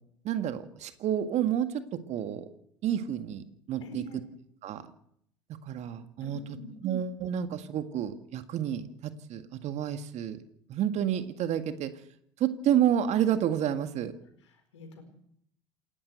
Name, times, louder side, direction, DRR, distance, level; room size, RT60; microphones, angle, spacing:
voice 1, 0.2-1.8 2.1-2.5 2.8-4.0 4.6-4.8 5.6-6.4 6.8-10.4 10.7-11.9 12.4-14.1, right 10 dB, 50° right, 9 dB, 1.9 m, -29 dB
voice 2, 3.8-4.2 6.2-6.7 14.4-15.0, left 3 dB, 75° left, 7 dB, 4.5 m, -46 dB
27.5 x 12.0 x 8.1 m, 0.72 s
figure-of-eight pair, 65°, 15 cm